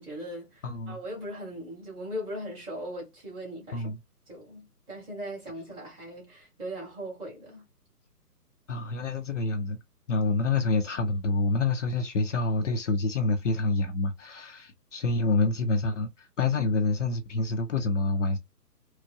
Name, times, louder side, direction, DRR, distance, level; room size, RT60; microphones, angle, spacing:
voice 1, 0.0-3.9 4.3-7.6, equal, 10° right, 1.3 m, -39 dB
voice 2, 0.6-1.0 3.7-4.0 8.7-9.8 10.1-18.4, left 3 dB, 50° left, 0.6 m, -27 dB
4.6 x 2.1 x 2.5 m
hypercardioid pair, 150°, 47 cm